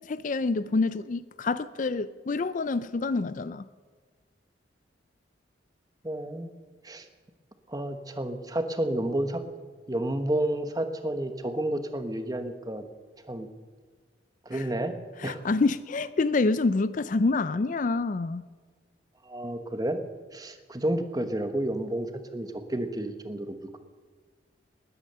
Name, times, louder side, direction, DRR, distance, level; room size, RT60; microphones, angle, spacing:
voice 1, 0.1-3.6 14.5-14.7 15.2-18.4, left 3 dB, 45° left, 15 dB, 0.4 m, -27 dB
voice 2, 6.0-6.5 6.8-7.1 7.7-9.4 9.9-12.8 13.3-13.5 14.4-14.9 15.2-15.4 19.2-20.0 20.3-23.8, right 1 dB, 20° right, 8 dB, 1.1 m, -30 dB
20.0 x 9.9 x 6.8 m, 1.5 s
head